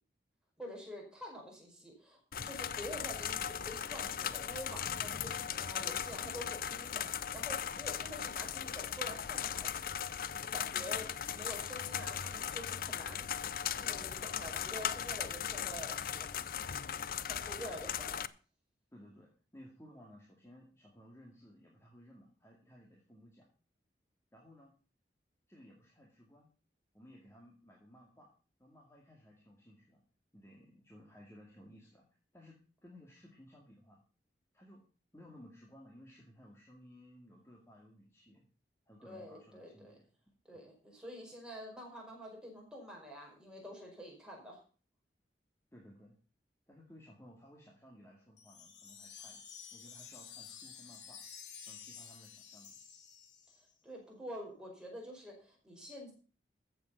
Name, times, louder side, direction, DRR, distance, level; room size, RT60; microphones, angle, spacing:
voice 1, 0.6-9.7 10.4-11.1 11.3-13.3 13.8-16.7 17.2-18.3 39.0-40.0 40.5-44.6 53.5-56.1, equal, 5° right, -1 dB, 4.9 m, -47 dB
sound 1, 2.3-18.3, left 8 dB, 50° left, 0.5 m, -38 dB
voice 2, 18.9-23.5 24.3-24.7 25.5-26.5 26.9-28.3 28.6-30.0 30.3-32.0 32.3-34.0 34.5-34.9 35.1-38.5 38.9-40.1 40.5-40.7 45.7-46.1 46.7-49.4 49.7-51.2 51.6-52.8, equal, 15° left, -2 dB, 2.3 m, -58 dB
Wind chime, 48.4-53.7, left 7 dB, 85° left, 2.7 m, -51 dB
14.0 x 7.9 x 5.6 m, 0.38 s
head